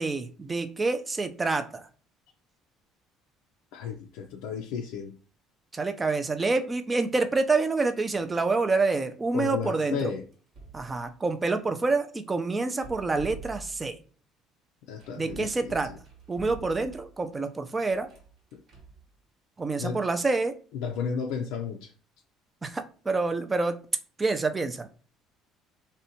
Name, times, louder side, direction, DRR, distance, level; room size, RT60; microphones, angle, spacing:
voice 1, 0.0-1.8 5.7-10.0 10.7-14.0 15.2-15.9 16.3-18.1 19.6-20.5 22.6-23.8 24.2-24.9, right 3 dB, 20° right, 0.4 m, -27 dB
voice 2, 3.7-5.2 9.3-10.2 14.9-15.9 18.5-18.6 19.8-20.0 20.7-21.9, left 6 dB, 85° left, 0.3 m, -33 dB
sound 1, 8.1-8.4 10.3-11.2 12.7-14.0 15.0-17.2 17.9-19.0, right 4 dB, 50° right, 1.0 m, -47 dB
2.6 x 2.2 x 2.7 m
cardioid pair, 110°, 0 cm